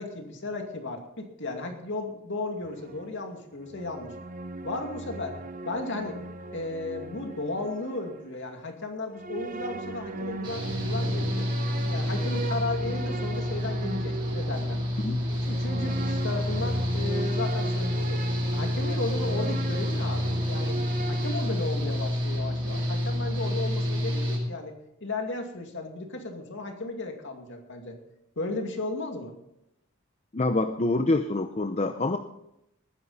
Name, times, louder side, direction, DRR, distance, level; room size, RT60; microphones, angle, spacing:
voice 1, 0.0-4.1 4.6-5.4 5.7-6.2 6.5-11.5 11.9-14.8 15.3-18.2 18.5-20.8 21.1-24.8 25.0-28.0 28.4-29.3, left 2 dB, 60° left, 4 dB, 2.4 m, -35 dB
sound 1, 2.6-8.5 9.1-21.6, right 2 dB, 40° right, 0.9 m, -38 dB
Engine / Mechanical fan, 10.4-24.4, left 1 dB, 20° right, 6.3 m, -29 dB
voice 2, 30.3-32.2, left 2 dB, 30° left, 7 dB, 0.7 m, -26 dB
19.5 x 10.0 x 4.2 m, 0.81 s
head